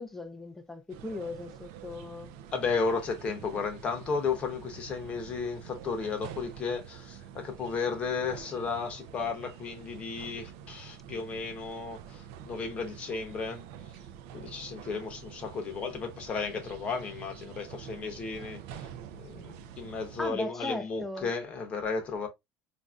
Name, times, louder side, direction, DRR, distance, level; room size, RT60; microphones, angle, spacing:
voice 1, 0.0-2.3 20.2-21.3, left 2 dB, 5° left, 0.4 m, -38 dB
sound 1, 0.9-20.3, right 9 dB, 65° right, 0.4 m, -47 dB
voice 2, 2.5-13.6 14.3-22.3, left 5 dB, 25° left, 0.8 m, -34 dB
5.1 x 2.5 x 2.3 m
cardioid pair, 175°, 5 cm